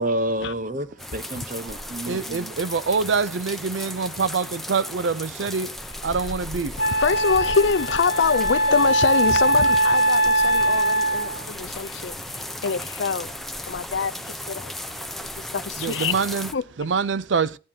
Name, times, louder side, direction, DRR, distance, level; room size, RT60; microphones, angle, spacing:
voice 1, 0.0-2.6, right 1 dB, 45° right, 0.9 m, -29 dB
sound 1, 1.0-16.5, left 1 dB, ahead, 0.6 m, -36 dB
voice 2, 2.1-7.0 11.3-12.6 15.0-15.5 15.8-16.5 16.8-17.6, right 5 dB, 85° right, 0.5 m, -26 dB
Wind instrument woodwind instrument, 6.1-6.2 6.8-11.4, right 1 dB, 65° left, 1.0 m, -21 dB
voice 3, 6.9-13.3 13.6-14.7 15.4-16.1 16.5-16.6, left 5 dB, 80° left, 0.5 m, -25 dB
15.0 x 11.0 x 2.8 m
head